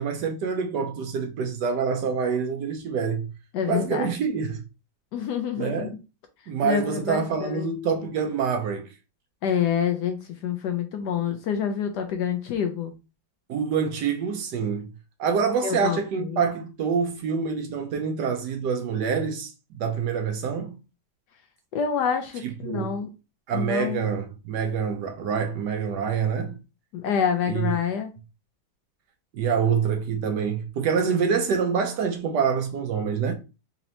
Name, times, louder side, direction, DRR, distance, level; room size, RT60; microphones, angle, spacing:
voice 1, 0.0-3.2 3.7-4.6 5.6-5.9 6.5-8.9 13.5-14.8 15.2-19.5 19.8-20.8 22.7-22.9 23.5-26.6 27.5-27.7 29.3-33.3, right 6 dB, 70° right, 1.2 m, -26 dB
voice 2, 3.5-4.1 5.1-5.9 6.6-7.7 9.4-10.2 10.4-12.9 15.6-16.4 21.7-23.1 23.5-24.1 26.9-28.1, left 7 dB, 75° left, 1.0 m, -27 dB
4.1 x 2.9 x 2.6 m
omnidirectional pair, 2.1 m